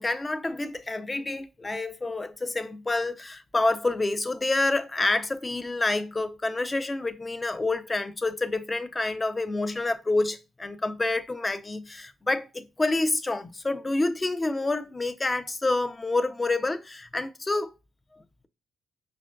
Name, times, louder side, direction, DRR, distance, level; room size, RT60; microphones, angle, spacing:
voice 1, 0.0-17.7 18.1-18.5, left 2 dB, 20° left, 0.4 m, -28 dB
5.5 x 2.5 x 2.2 m
cardioid pair, 90°, 0 cm